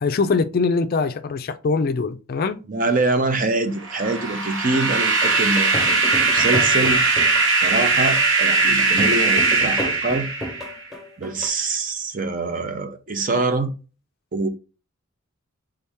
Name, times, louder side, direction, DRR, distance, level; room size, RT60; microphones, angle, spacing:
voice 1, 0.0-2.6, left 4 dB, 45° left, 0.4 m, -22 dB
voice 2, 2.7-7.0 7.6-10.3 11.2-13.7 14.3-14.5, right 3 dB, 40° right, 0.6 m, -24 dB
sound 1, 3.8-10.8, right 3 dB, 60° right, 1.0 m, -20 dB
sound 2, 4.7-11.5, left 1 dB, ahead, 1.1 m, -33 dB
3.6 x 2.8 x 3.4 m
head